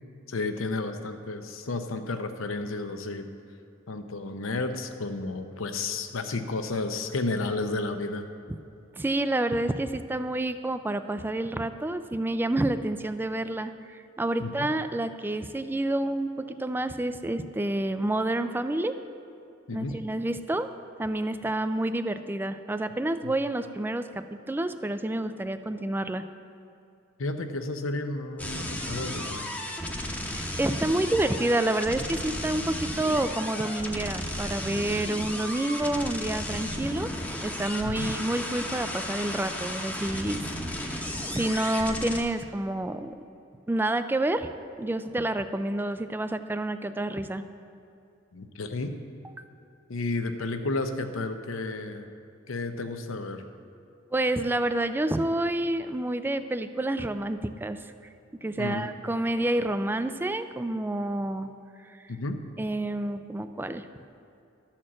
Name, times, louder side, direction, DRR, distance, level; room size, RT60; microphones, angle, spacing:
voice 1, 0.3-3.2 3.9-8.3 14.4-14.7 19.7-20.0 23.2-23.3 27.2-29.5 37.8-38.1 48.3-48.9 49.9-52.1 52.5-53.5 58.6-58.8 62.1-62.4, left 2 dB, 75° left, 7 dB, 0.7 m, -32 dB
voice 2, 8.9-19.0 19.7-20.7 21.0-26.2 30.3-40.4 40.8-43.2 43.7-44.5 44.8-47.4 54.1-57.8 58.4-61.5 62.6-63.9, right 1 dB, 10° right, 10 dB, 0.3 m, -29 dB
sound 1, 28.4-42.2, left 1 dB, 10° left, 0.9 m, -34 dB
12.5 x 4.4 x 7.4 m, 2.7 s
head